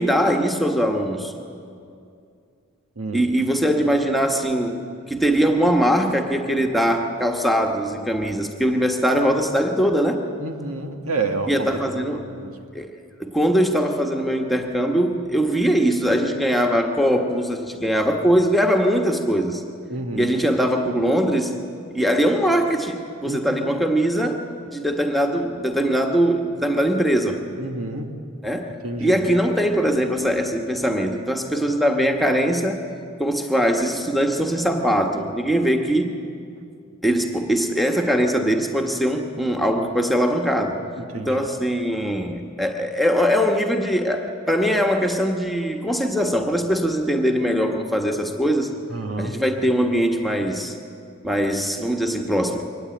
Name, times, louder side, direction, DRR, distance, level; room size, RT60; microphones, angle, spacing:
voice 1, 0.0-1.4 3.1-4.8 5.1-10.2 11.5-12.2 12.7-12.9 13.2-19.6 20.1-21.5 21.9-27.4 28.4-28.7 29.0-32.8 33.2-36.1 37.0-40.8 41.2-48.7 49.2-50.7 51.2-52.7, equal, ahead, 2 dB, 1.4 m, -21 dB
voice 2, 3.0-3.3 10.4-12.6 19.9-20.4 23.2-23.7 27.6-28.2 28.8-29.2 41.0-41.5 48.9-49.4, right 3 dB, 85° right, 5 dB, 1.9 m, -29 dB
23.0 x 18.0 x 9.1 m, 2.4 s
head